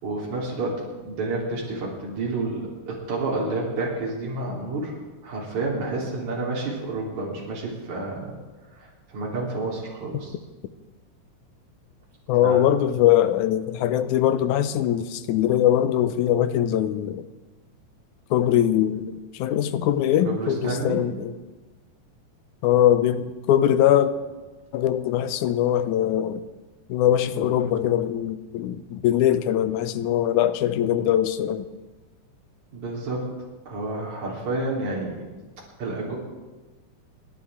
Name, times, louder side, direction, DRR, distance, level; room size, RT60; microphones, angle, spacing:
voice 1, 0.0-4.9 5.2-8.3 8.8-10.3 12.4-12.6 20.2-21.0 32.7-33.2 33.7-35.2 35.8-36.2, right 2 dB, 65° right, 4.6 m, -29 dB
voice 2, 12.3-17.3 18.3-21.3 22.6-24.1 24.7-26.4 26.9-31.7, left 11 dB, 80° left, 2.1 m, -22 dB
28.5 x 10.5 x 3.6 m
omnidirectional pair, 3.6 m